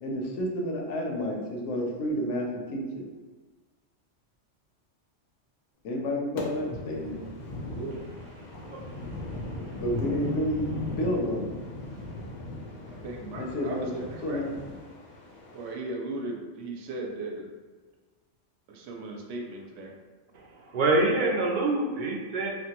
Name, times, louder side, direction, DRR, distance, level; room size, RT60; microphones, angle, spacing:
voice 1, 0.0-3.0 5.8-7.2 9.8-11.5 13.4-13.9 14.2-14.5, equal, 75° left, 0 dB, 0.9 m, -30 dB
sound 1, 6.4-15.7, left 2 dB, 50° left, 0.6 m, -38 dB
voice 2, 8.5-9.8 20.3-22.5, right 2 dB, 60° right, -1 dB, 0.5 m, -28 dB
voice 3, 12.9-14.4 15.5-17.5 18.7-19.9, right 2 dB, 85° right, 0 dB, 0.9 m, -37 dB
3.1 x 2.1 x 2.8 m, 1.3 s
omnidirectional pair, 1.2 m